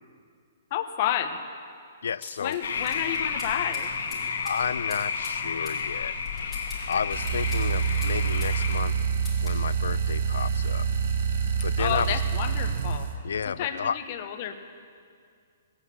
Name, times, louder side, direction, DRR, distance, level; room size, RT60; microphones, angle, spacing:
voice 1, 0.7-1.4 2.4-3.9 11.8-13.1 13.5-14.6, left 10 dB, 35° left, 7 dB, 1.1 m, -30 dB
voice 2, 2.0-2.6 4.4-6.1 6.9-9.0 9.4-10.9 11.6-12.2 13.2-14.0, left 6 dB, 85° left, 17 dB, 0.4 m, -31 dB
sound 1, 2.2-8.6 8.9-9.6, left 3 dB, 5° left, 3.0 m, -46 dB
sound 2, 2.6-8.8, left 5 dB, 70° left, 1.7 m, -31 dB
sound 3, 7.1-13.2, right 6 dB, 50° right, 1.2 m, -26 dB
18.0 x 8.7 x 7.8 m, 2.2 s
hypercardioid pair, 165°, 0 cm